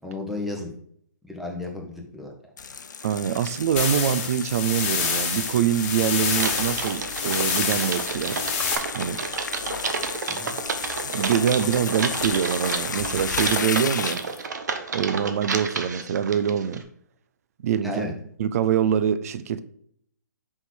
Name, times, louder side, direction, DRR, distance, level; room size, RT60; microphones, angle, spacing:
voice 1, 0.0-0.7 1.2-2.3 10.3-10.5 17.8-18.1, left 2 dB, ahead, 1.1 m, -33 dB
sound 1, 2.6-14.4, left 6 dB, 75° left, 0.6 m, -34 dB
voice 2, 3.0-8.4 8.9-9.2 11.0-14.2 14.9-16.8 17.6-18.0 18.4-19.6, right 8 dB, 55° right, 0.5 m, -24 dB
sound 2, 3.8-8.8, left 6 dB, 35° left, 1.4 m, -27 dB
Typing, 6.3-16.8, right 5 dB, 70° right, 0.9 m, -31 dB
5.6 x 4.0 x 4.4 m
hypercardioid pair, 135°, 10 cm